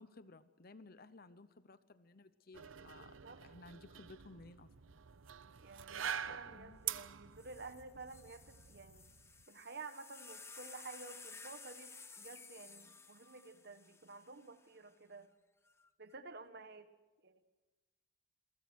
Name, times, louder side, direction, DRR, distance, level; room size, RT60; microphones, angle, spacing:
voice 1, 0.0-3.1 3.4-5.0 6.3-6.8, left 3 dB, 50° left, 13 dB, 0.9 m, -57 dB
sound 1, 2.5-9.4, right 9 dB, 80° right, 0.8 m, -46 dB
voice 2, 2.7-3.4 5.6-9.1 9.5-15.3 16.0-16.9 17.2-17.4, right 3 dB, 55° right, 10 dB, 1.6 m, -52 dB
sound 2, 7.0-7.1 7.4-14.8 15.7-16.1, left 4 dB, 15° left, 1.0 m, -55 dB
28.0 x 23.0 x 6.4 m, 1.2 s
head